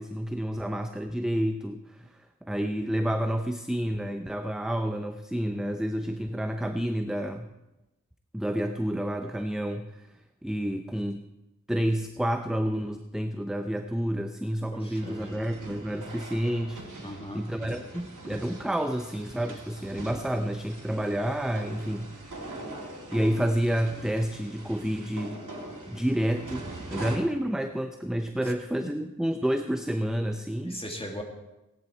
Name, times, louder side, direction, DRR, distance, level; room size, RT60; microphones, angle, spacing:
voice 1, 0.0-2.1 2.4-7.5 8.3-10.1 10.4-11.2 11.7-16.8 17.3-22.5 22.8-25.4 25.9-30.8, equal, ahead, 6 dB, 0.7 m, -29 dB
voice 2, 14.7-15.4 17.0-17.4 28.4-28.5 28.8-28.9 30.6-31.2, equal, 20° left, 2 dB, 2.5 m, -39 dB
sound 1, 14.9-27.2, right 2 dB, 80° right, 2.5 m, -42 dB
17.0 x 10.5 x 4.5 m, 0.97 s
wide cardioid pair, 55°, 30 cm